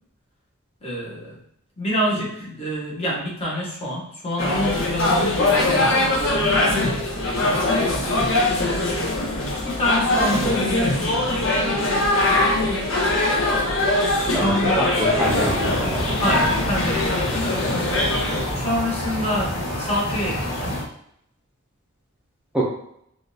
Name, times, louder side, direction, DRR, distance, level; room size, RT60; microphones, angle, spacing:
voice 1, 0.8-1.4 1.8-7.8 8.8-9.3 9.6-12.9 13.2-13.4 14.4-15.2 16.2-18.0 18.5-20.8, equal, 25° left, -5 dB, 1.0 m, -28 dB
sound 1, 4.4-18.5, left 2 dB, 65° left, 0.7 m, -22 dB
voice 2, 14.3-16.1 22.5-22.6, equal, 5° right, -6 dB, 0.4 m, -25 dB
sound 2, 15.2-20.9, equal, 85° left, 1.0 m, -28 dB
3.5 x 2.4 x 2.6 m, 0.72 s
head